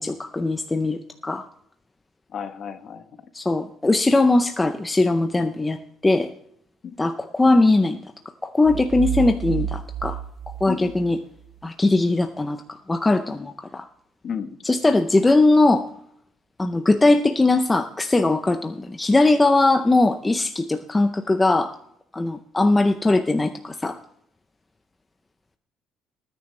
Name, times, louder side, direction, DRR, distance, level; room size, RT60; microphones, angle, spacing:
voice 1, 0.0-1.5 3.3-6.3 7.0-8.0 8.4-10.2 10.6-11.2 11.6-13.9 14.6-15.9 16.6-21.7 22.1-24.0, left 2 dB, 10° left, 7 dB, 0.5 m, -20 dB
voice 2, 2.3-3.1 6.8-6.9 10.7-10.9 14.2-14.6, left 7 dB, 35° left, 9 dB, 1.1 m, -32 dB
sound 1, 8.6-11.5, right 10 dB, 55° right, 0.8 m, -30 dB
20.0 x 9.5 x 3.2 m, 0.67 s
cardioid pair, 180°, 0 cm